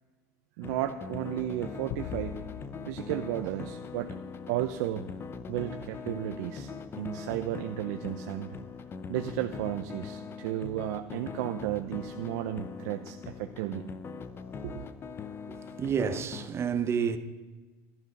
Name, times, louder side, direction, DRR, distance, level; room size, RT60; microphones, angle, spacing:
sound 1, 0.6-16.5, left 5 dB, 30° left, 0.7 m, -41 dB
voice 1, 0.6-2.4 2.9-4.2 4.5-5.1 5.5-8.6 9.1-13.8 14.6-14.8, right 13 dB, 80° right, 0.7 m, -33 dB
sound 2, 1.9-4.5, left 9 dB, 65° left, 0.7 m, -43 dB
voice 2, 15.5-17.2, right 7 dB, 30° right, 0.9 m, -30 dB
12.5 x 12.0 x 5.3 m
supercardioid pair, 120°, 8 cm